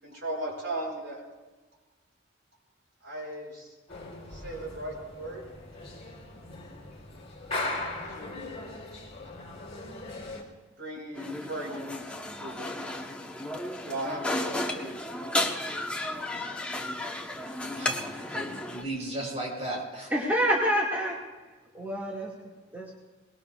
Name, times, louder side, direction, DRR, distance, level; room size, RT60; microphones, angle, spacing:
voice 1, 0.0-1.2 3.0-3.7 4.3-5.4 8.1-8.7 10.8-11.9 12.4-12.8 13.8-15.0, right 1 dB, 65° right, -3 dB, 6.5 m, -37 dB
sound 1, 3.9-10.4, left 2 dB, 35° left, 3.8 m, -39 dB
sound 2, 11.2-18.8, left 1 dB, 5° left, 1.0 m, -33 dB
voice 2, 17.8-20.1, right 1 dB, 35° right, -2 dB, 4.4 m, -36 dB
voice 3, 20.1-21.2 21.7-22.3 22.7-22.9, equal, 10° right, -5 dB, 2.0 m, -27 dB
23.0 x 21.0 x 2.4 m, 1.3 s
head